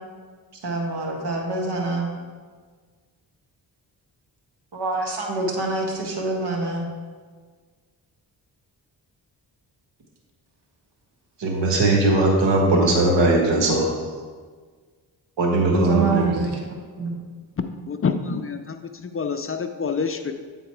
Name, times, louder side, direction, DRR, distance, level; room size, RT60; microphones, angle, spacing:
voice 1, 0.6-2.1 4.7-6.8 15.7-16.6 17.0-17.1, right 3 dB, 65° right, 0 dB, 1.6 m, -26 dB
voice 2, 11.4-13.9 15.4-16.4, right 2 dB, 85° right, 0 dB, 1.4 m, -19 dB
voice 3, 17.6-20.3, left 5 dB, 30° left, 8 dB, 0.5 m, -27 dB
8.3 x 3.9 x 4.6 m, 1.6 s
cardioid pair, 60°, 43 cm